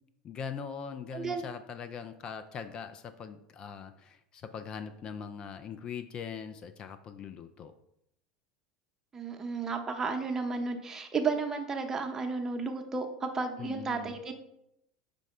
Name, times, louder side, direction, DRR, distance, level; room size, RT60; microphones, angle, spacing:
voice 1, 0.2-7.7 13.6-14.2, left 7 dB, 40° left, 10 dB, 0.3 m, -41 dB
voice 2, 1.1-1.5 9.1-14.3, right 4 dB, 20° right, 3 dB, 0.7 m, -33 dB
5.1 x 2.2 x 4.8 m, 0.80 s
hypercardioid pair, 85°, 2 cm